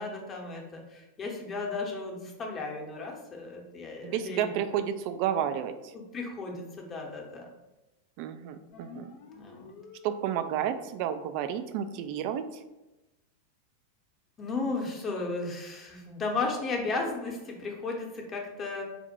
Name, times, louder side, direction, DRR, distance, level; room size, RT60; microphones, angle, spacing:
voice 1, 0.0-4.8 5.9-7.5 9.3-9.8 14.4-18.8, left 3 dB, 25° left, 1 dB, 0.8 m, -35 dB
voice 2, 4.0-5.7 8.2-9.1 10.0-12.6, right 9 dB, 45° right, 9 dB, 0.3 m, -31 dB
sound 1, 8.7-10.7, left 5 dB, 50° left, 0.5 m, -50 dB
4.2 x 2.1 x 4.3 m, 1.0 s
figure-of-eight pair, 90°, 0 cm